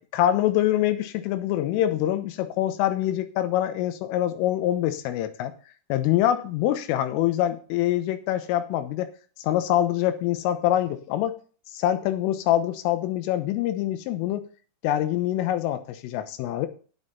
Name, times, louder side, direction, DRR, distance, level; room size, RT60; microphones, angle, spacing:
voice 1, 0.1-5.5 5.9-9.1 9.4-11.4 11.7-14.5 14.8-16.7, left 12 dB, 85° left, 9 dB, 3.5 m, -25 dB
9.5 x 8.8 x 4.1 m, 0.38 s
omnidirectional pair, 5.8 m